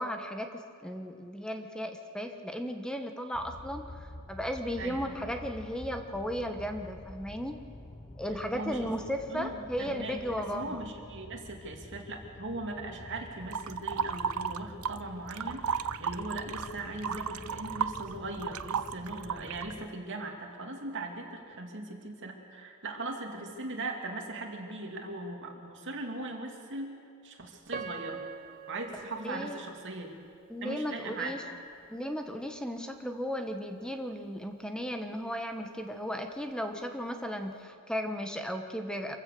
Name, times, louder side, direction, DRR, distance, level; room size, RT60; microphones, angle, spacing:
voice 1, 0.0-7.6 8.2-10.8 29.2-29.6 30.5-31.4 31.9-39.2, equal, 5° left, 5 dB, 1.1 m, -35 dB
sound 1, 3.3-19.9, left 1 dB, 20° left, 0.6 m, -48 dB
voice 2, 4.8-5.2 8.5-8.9 9.3-26.9 27.2-28.2 28.7-30.2 30.6-31.4, right 2 dB, 60° right, 2 dB, 2.7 m, -39 dB
sound 2, 13.5-15.0 15.3-19.7, right 7 dB, 85° right, 0.6 m, -33 dB
Piano, 27.7-30.7 31.3-31.4 32.0-32.3, right 6 dB, 40° right, 0.7 m, -44 dB
26.0 x 15.5 x 6.8 m, 2.5 s
head